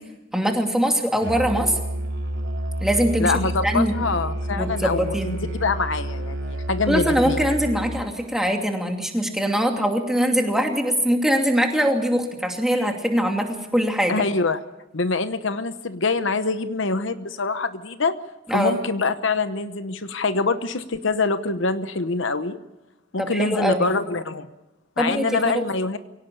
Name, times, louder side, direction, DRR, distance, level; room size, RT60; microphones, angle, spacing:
voice 1, 0.3-1.8 2.8-3.3 3.6-3.9 4.6-5.3 6.9-14.2 18.5-18.7 23.2-23.9 25.0-25.6, equal, ahead, 2 dB, 2.6 m, -22 dB
Musical instrument, 1.2-8.2, right 1 dB, 60° right, 3.0 m, -29 dB
voice 2, 3.2-7.4 14.1-14.6 14.9-18.1 18.5-22.6 23.1-24.5 25.0-26.0, left 3 dB, 65° left, 11 dB, 0.9 m, -25 dB
23.5 x 18.0 x 8.7 m, 1.0 s
head